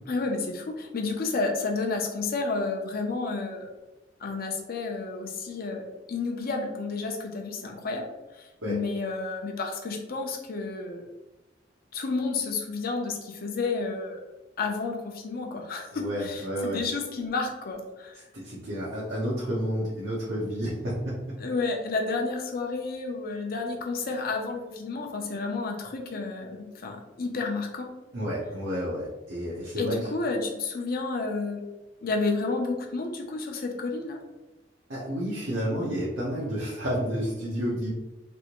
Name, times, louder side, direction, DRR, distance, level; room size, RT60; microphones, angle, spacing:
voice 1, 0.1-3.7 4.2-5.8 6.1-8.1 8.4-11.0 11.9-14.2 14.6-18.2 21.4-27.9 29.8-31.6 32.0-34.2, left 3 dB, 55° left, 2 dB, 0.6 m, -31 dB
voice 2, 15.9-16.8 18.3-21.1 28.1-30.0 34.9-37.9, equal, 85° right, -8 dB, 0.9 m, -30 dB
3.4 x 2.5 x 2.9 m, 1.1 s
head